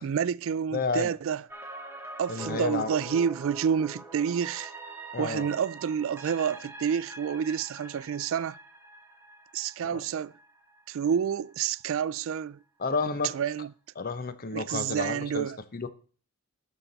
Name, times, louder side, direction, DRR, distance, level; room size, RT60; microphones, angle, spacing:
voice 1, 0.0-1.4 2.2-4.7 5.2-8.6 9.5-10.3 10.9-12.6 13.3-13.7 14.5-15.6, right 7 dB, 65° right, 0.3 m, -29 dB
voice 2, 0.7-1.1 2.3-2.9 5.1-5.5 9.8-10.0 12.8-13.3 14.0-15.9, left 4 dB, 40° left, 0.7 m, -31 dB
sound 1, 1.5-11.5 11.9-12.0, right 1 dB, 10° right, 1.1 m, -44 dB
12.5 x 5.8 x 4.0 m
head